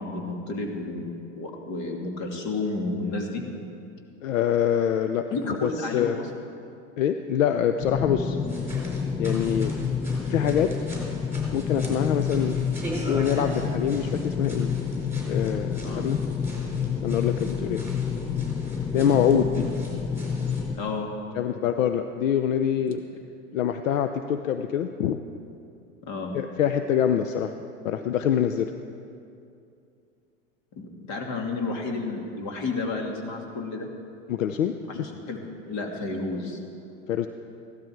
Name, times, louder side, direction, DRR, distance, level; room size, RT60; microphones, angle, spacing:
voice 1, 0.0-3.4 5.3-6.3 15.8-16.0 20.7-21.1 26.0-26.3 30.8-33.9 34.9-35.4 35.7-36.6, left 3 dB, 45° left, 2 dB, 2.5 m, -31 dB
voice 2, 4.2-5.3 5.6-6.2 7.0-8.4 9.2-9.7 10.3-10.7 11.5-12.6 13.0-14.7 15.3-16.2 17.0-17.8 18.9-19.7 21.4-23.0 23.5-25.2 26.3-27.5 27.8-28.7 34.3-35.0 37.1-37.3, left 9 dB, 75° left, 8 dB, 0.7 m, -25 dB
sound 1, 7.8-20.8, left 6 dB, 10° left, 0.4 m, -29 dB
sound 2, 8.4-20.7, right 1 dB, 5° right, 4.2 m, -42 dB
16.0 x 12.5 x 4.6 m, 2.5 s
hypercardioid pair, 95°, 40 cm